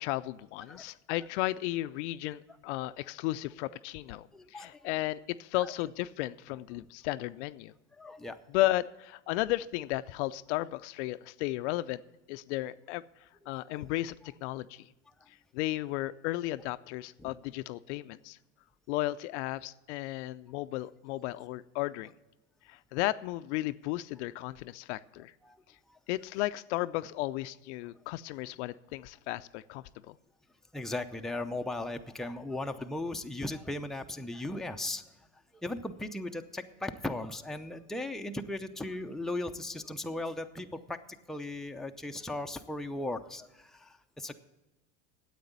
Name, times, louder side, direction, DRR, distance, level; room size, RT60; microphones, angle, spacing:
voice 1, 0.0-7.7 8.5-12.0 12.3-13.0 13.5-14.9 15.5-18.4 18.9-22.1 22.7-25.3 26.1-30.2, left 17 dB, 75° left, 14 dB, 0.5 m, -34 dB
voice 2, 4.3-4.9 5.5-5.7 6.7-6.9 8.0-8.4 13.7-13.9 17.2-17.3 25.4-25.6 25.9-26.0 30.7-35.0 35.6-41.0 41.3-44.3, left 2 dB, ahead, 5 dB, 0.6 m, -37 dB
9.4 x 8.2 x 8.0 m, 1.0 s
supercardioid pair, 105°, 36 cm